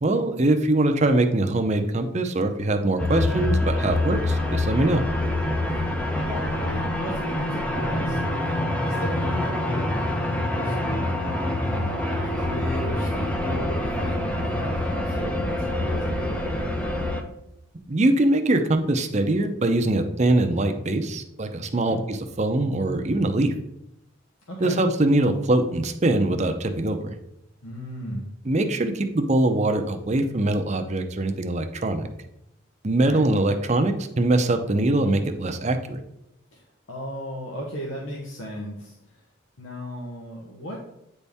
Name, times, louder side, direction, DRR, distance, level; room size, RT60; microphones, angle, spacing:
voice 1, 0.0-5.0 17.9-23.5 24.6-27.1 28.5-32.1 32.8-36.0, right 2 dB, 35° right, 6 dB, 0.6 m, -22 dB
sound 1, 3.0-17.2, left 1 dB, 5° left, 0.6 m, -26 dB
voice 2, 6.1-16.6 21.7-22.0 24.5-24.8 27.6-28.3 33.0-33.2 36.5-36.6 36.9-39.2 39.6-40.8, equal, 85° left, -3 dB, 1.1 m, -36 dB
8.9 x 4.1 x 3.5 m, 0.82 s
head